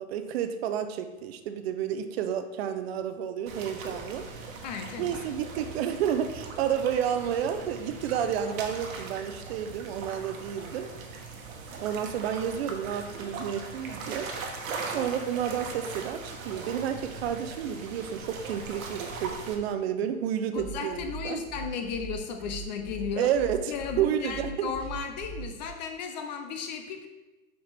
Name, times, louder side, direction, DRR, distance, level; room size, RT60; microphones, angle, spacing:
voice 1, 0.0-4.2 5.0-10.9 11.8-21.4 23.2-24.7, right 9 dB, 50° right, 8 dB, 0.6 m, -31 dB
sound 1, 3.5-19.5, right 4 dB, 70° right, 1.2 m, -40 dB
voice 2, 4.6-5.3 20.0-20.1 20.5-23.3 23.7-27.1, left 6 dB, 35° left, 6 dB, 0.4 m, -35 dB
sound 2, 20.6-25.7, right 4 dB, 25° right, 0.9 m, -40 dB
6.5 x 4.6 x 3.4 m, 1.1 s
hypercardioid pair, 140°, 42 cm